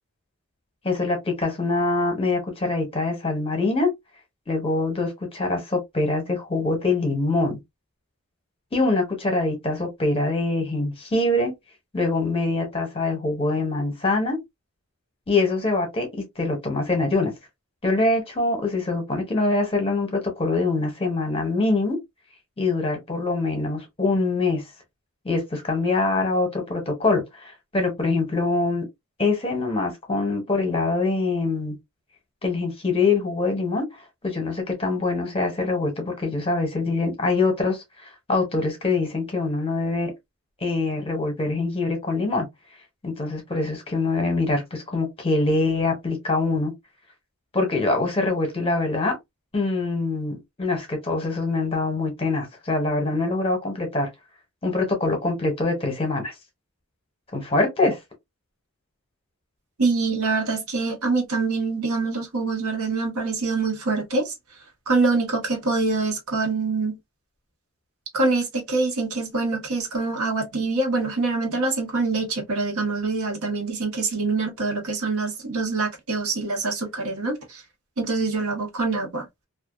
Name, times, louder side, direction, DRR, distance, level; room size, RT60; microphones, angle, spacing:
voice 1, 0.8-3.9 4.5-7.6 8.7-11.5 11.9-14.4 15.3-17.3 17.8-22.0 22.6-24.6 25.2-28.9 29.2-31.8 32.4-33.9 34.2-40.1 40.6-42.5 43.0-46.7 47.5-49.2 49.5-54.1 54.6-56.3 57.3-58.0, left 3 dB, 25° left, 0.8 m, -24 dB
voice 2, 59.8-64.3 64.9-67.0 68.1-77.6 78.0-79.2, right 3 dB, 80° right, 0.9 m, -25 dB
2.4 x 2.3 x 2.3 m
head